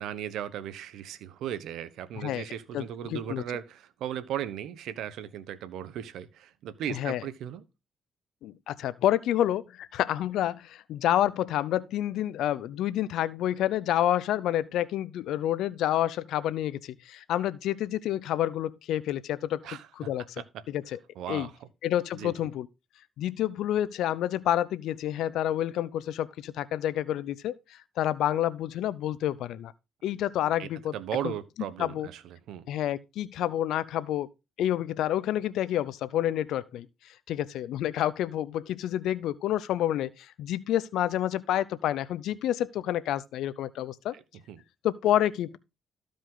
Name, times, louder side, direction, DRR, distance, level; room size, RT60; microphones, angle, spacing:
voice 1, 0.0-7.6 19.6-19.9 21.2-21.5 22.1-22.3 30.4-32.7 44.1-44.2 44.5-44.6, right 10 dB, 80° right, 1.0 m, -37 dB
voice 2, 2.7-3.4 6.9-7.2 8.4-19.6 20.0-20.2 20.7-21.0 21.3-21.5 21.8-22.7 23.2-29.7 30.0-30.9 31.2-31.3 31.8-32.1 32.7-34.3 34.6-36.9 37.3-44.2 44.8-45.6, left 12 dB, 85° left, 0.5 m, -29 dB
14.0 x 5.2 x 3.8 m
cardioid pair, 90°, 0 cm